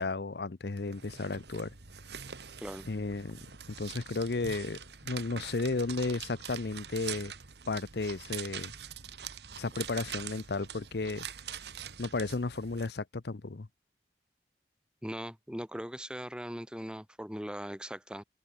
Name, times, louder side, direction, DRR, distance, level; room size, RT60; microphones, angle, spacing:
voice 1, 0.0-1.7 2.8-3.4 3.8-7.3 7.7-8.7 9.6-11.3 12.0-13.7, left 3 dB, 70° left, 0.7 m, -33 dB
sound 1, 0.8-12.9, right 8 dB, 75° right, 1.8 m, -44 dB
voice 2, 15.0-18.2, equal, 5° right, 1.2 m, -40 dB
open air
head